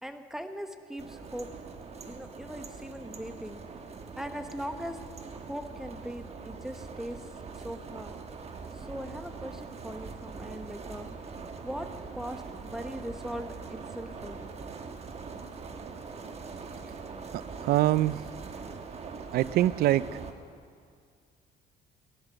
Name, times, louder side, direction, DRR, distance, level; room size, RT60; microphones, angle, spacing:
voice 1, 0.0-1.5 2.1-3.6 4.2-5.0 5.3-7.2 7.5-8.2 8.7-11.1 11.6-11.9 12.1-14.6, equal, 5° right, 7 dB, 1.0 m, -40 dB
sound 1, 1.0-20.3, right 4 dB, 40° right, 1.2 m, -42 dB
voice 2, 17.3-18.2 19.3-20.1, right 14 dB, 65° right, 19 dB, 0.4 m, -24 dB
17.5 x 11.0 x 6.6 m, 2.2 s
cardioid pair, 110°, 17 cm